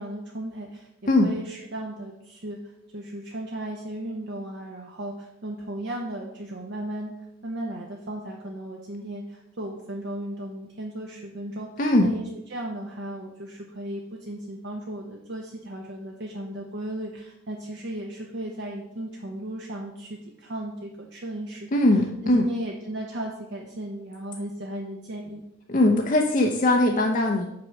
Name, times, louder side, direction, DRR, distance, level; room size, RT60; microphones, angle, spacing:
voice 1, 0.0-0.9 1.2-7.1 7.4-21.7 22.2-25.4, right 1 dB, 55° right, 0 dB, 0.8 m, -35 dB
voice 2, 11.8-12.1 21.7-22.5 25.7-27.5, left 1 dB, 40° left, 2 dB, 0.6 m, -20 dB
6.1 x 4.6 x 6.3 m, 0.85 s
head